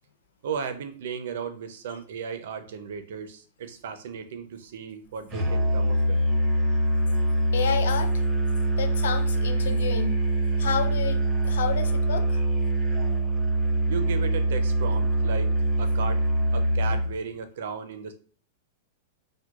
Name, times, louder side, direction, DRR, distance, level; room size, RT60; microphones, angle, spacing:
voice 1, 0.4-6.2 13.9-16.2 16.5-18.1, right 6 dB, 65° right, 8 dB, 0.5 m, -35 dB
Musical instrument, 5.3-17.2, right 1 dB, 20° right, 0.7 m, -24 dB
voice 2, 7.5-8.1 8.8-10.2 10.6-11.2 11.4-12.4, left 7 dB, 80° left, 8 dB, 0.5 m, -29 dB
4.5 x 2.2 x 2.3 m, 0.43 s
supercardioid pair, 155°, 0 cm